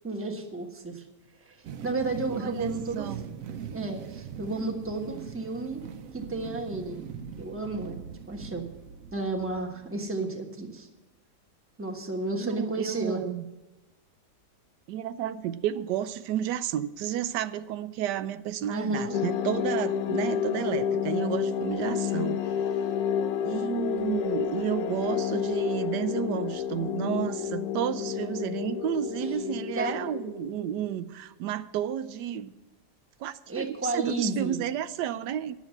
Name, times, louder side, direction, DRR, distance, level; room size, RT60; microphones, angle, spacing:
voice 1, 0.0-1.0 1.4-3.1 3.7-5.8 6.1-7.0 7.4-8.7 9.1-10.9 11.8-13.2 18.7-19.2 29.2-29.3 29.7-30.0 33.5-34.6, right 2 dB, 10° right, 3 dB, 1.0 m, -32 dB
sound 1, 1.6-10.1, right 7 dB, 65° right, 0.9 m, -41 dB
voice 2, 2.4-3.3 12.4-13.4 14.9-22.4 23.4-32.5 33.2-35.6, right 10 dB, 90° right, 13 dB, 1.2 m, -32 dB
sound 2, 19.1-30.9, left 8 dB, 70° left, 1.0 m, -30 dB
11.0 x 7.2 x 7.7 m, 1.1 s
omnidirectional pair, 1.8 m